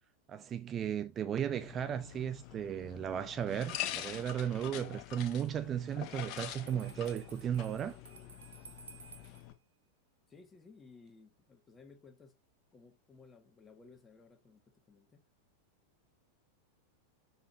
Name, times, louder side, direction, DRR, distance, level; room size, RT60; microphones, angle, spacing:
voice 1, 0.3-8.0, right 9 dB, 25° right, 0.4 m, -35 dB
sound 1, 1.5-9.5, left 12 dB, 40° left, 1.0 m, -45 dB
Bell, 6.4-9.5, right 5 dB, 70° right, 0.8 m, -55 dB
voice 2, 10.3-12.4 12.7-14.6 14.9-15.2, left 4 dB, 15° left, 1.6 m, -58 dB
6.9 x 6.4 x 2.8 m
figure-of-eight pair, 90°, 0 cm